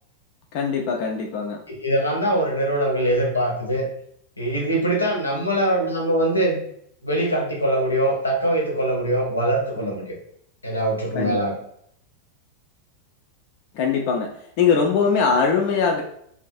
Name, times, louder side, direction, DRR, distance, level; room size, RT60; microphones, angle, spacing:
voice 1, 0.5-1.6 11.1-11.4 13.7-16.0, left 5 dB, 45° left, 1 dB, 0.3 m, -21 dB
voice 2, 1.7-3.9 4.4-6.6 7.0-10.0 10.6-11.5, right 1 dB, 80° left, 0 dB, 0.6 m, -22 dB
2.4 x 2.3 x 2.4 m, 0.68 s
figure-of-eight pair, 90°, 0 cm